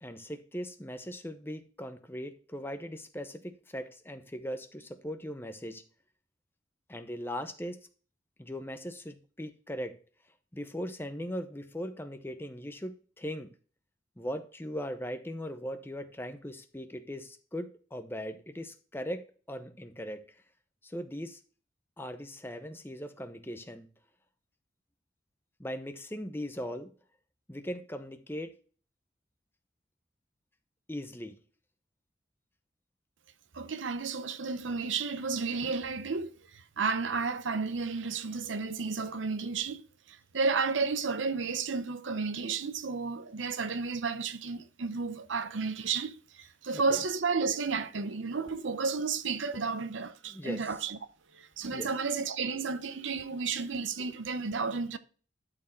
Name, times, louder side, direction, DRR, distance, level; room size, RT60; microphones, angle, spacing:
voice 1, 0.0-5.8 6.9-7.8 8.4-10.0 10.5-13.5 14.2-20.4 20.8-21.4 22.0-23.9 25.6-26.9 27.5-28.5 30.9-31.4 46.7-47.0 50.3-50.6 51.7-51.9, equal, 10° left, 0.8 m, -39 dB
voice 2, 33.5-51.0 51.3-55.0, right 4 dB, 75° right, 0.7 m, -32 dB
12.0 x 4.7 x 4.5 m
head